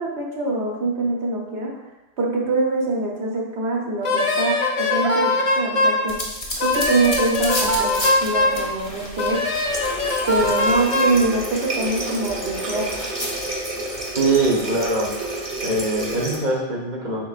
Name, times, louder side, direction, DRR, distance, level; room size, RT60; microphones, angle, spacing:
voice 1, 0.0-1.7 2.2-6.2 6.6-9.4 10.3-12.9, right 2 dB, 65° right, -2 dB, 1.1 m, -24 dB
Wind instrument woodwind instrument, 4.0-6.0 6.6-8.6 9.2-11.2, left 2 dB, 60° left, 0.3 m, -21 dB
sound 1, 6.1-11.1 11.5-13.5, left 1 dB, 30° left, 0.8 m, -32 dB
Water tap faucet, 9.7-16.4, right 2 dB, 10° right, 0.8 m, -30 dB
voice 2, 14.1-15.1 15.6-17.2, right 2 dB, 40° right, -3 dB, 0.9 m, -22 dB
4.9 x 3.7 x 2.4 m, 1.1 s
omnidirectional pair, 1.3 m